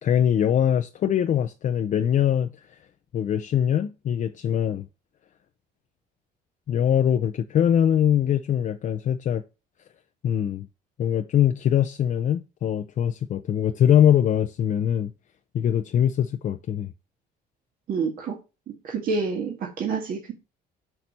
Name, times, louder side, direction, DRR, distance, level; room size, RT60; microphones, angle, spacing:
voice 1, 0.0-2.5 3.1-4.9 6.7-9.4 10.2-10.7 11.0-15.1 15.5-16.9, left 9 dB, 50° left, 0.6 m, -22 dB
voice 2, 17.9-18.4 18.8-20.3, right 5 dB, 55° right, 1.9 m, -28 dB
6.7 x 6.1 x 4.2 m
cardioid pair, 110°, 17 cm